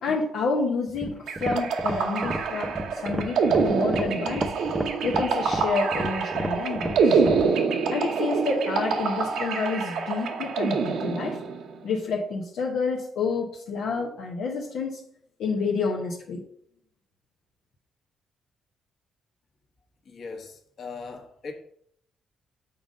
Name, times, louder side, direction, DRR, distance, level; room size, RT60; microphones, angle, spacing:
voice 1, 0.0-4.5 5.0-7.2 7.9-11.4 11.8-15.0 15.4-16.4, left 4 dB, 75° left, 1.0 m, -29 dB
sound 1, 0.9-7.5, right 1 dB, 15° right, 0.6 m, -32 dB
sound 2, 1.3-11.7, right 5 dB, 80° right, 1.0 m, -26 dB
voice 2, 20.0-21.5, left 4 dB, 55° left, 1.5 m, -39 dB
6.9 x 4.0 x 5.1 m
cardioid pair, 90°, 0 cm